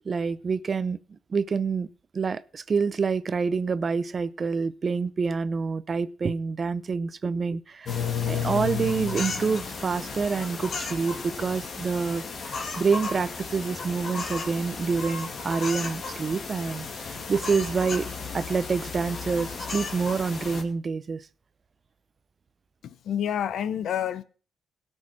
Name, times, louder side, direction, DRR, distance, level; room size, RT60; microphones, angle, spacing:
voice 1, 0.0-1.0 1.3-1.9 2.1-7.9 8.2-18.1 18.3-21.2, right 5 dB, 40° right, 0.7 m, -27 dB
sound 1, 7.9-20.6, left 5 dB, 50° left, 2.4 m, -33 dB
voice 2, 22.8-24.2, left 9 dB, 70° left, 0.8 m, -28 dB
17.5 x 6.5 x 5.9 m
cardioid pair, 90°, 0 cm